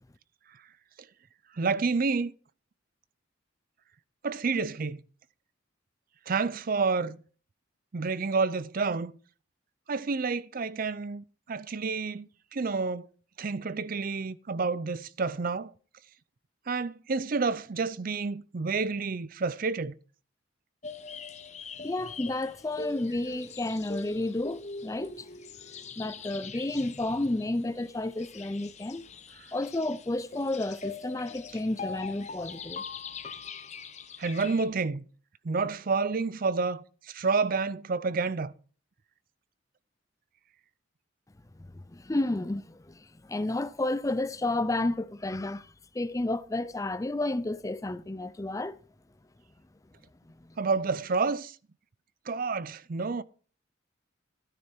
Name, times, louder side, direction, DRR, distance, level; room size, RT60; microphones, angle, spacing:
voice 1, 1.5-2.3 4.2-5.0 6.3-7.2 7.9-9.2 9.9-13.1 13.4-15.7 16.7-19.9 34.2-35.0 35.4-38.5 50.6-51.6 52.3-53.2, right 4 dB, 45° right, 0.5 m, -29 dB
sound 1, 20.8-34.6, left 5 dB, 35° left, 1.0 m, -43 dB
voice 2, 21.8-25.3 26.0-29.0 29.5-32.8 41.7-48.8 50.4-50.5, left 2 dB, 15° left, 0.5 m, -31 dB
12.5 x 10.0 x 4.4 m
head